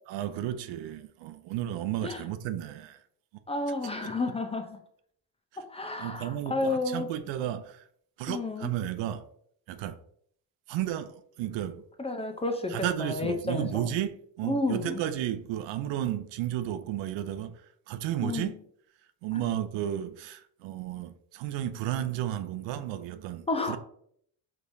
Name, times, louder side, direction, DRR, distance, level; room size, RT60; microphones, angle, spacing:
voice 1, 0.1-3.0 6.0-7.9 8.2-9.3 9.7-10.0 10.7-11.8 12.7-18.5 19.2-23.8, right 11 dB, 85° right, 0.6 m, -33 dB
voice 2, 3.5-4.8 5.7-7.1 8.3-8.7 12.0-13.9 14.5-15.0 18.2-18.5 23.5-23.8, left 2 dB, 15° left, 0.5 m, -31 dB
4.9 x 3.4 x 2.6 m
cardioid pair, 110°, 43 cm